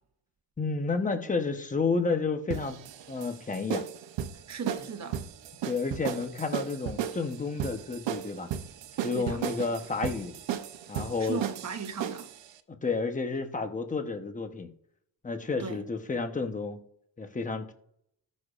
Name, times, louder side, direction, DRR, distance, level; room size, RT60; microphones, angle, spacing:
voice 1, 0.6-2.8 3.1-3.8 5.6-8.5 9.0-10.3 10.9-11.4 12.7-14.7 15.2-16.8 17.2-17.7, left 4 dB, 20° left, 0.9 m, -31 dB
sound 1, 2.5-12.4, right 10 dB, 85° right, 0.8 m, -35 dB
voice 2, 4.5-5.2 9.1-9.4 11.2-12.3 15.6-15.8, right 5 dB, 40° right, 1.0 m, -36 dB
19.0 x 6.4 x 2.5 m
cardioid pair, 135°, 43 cm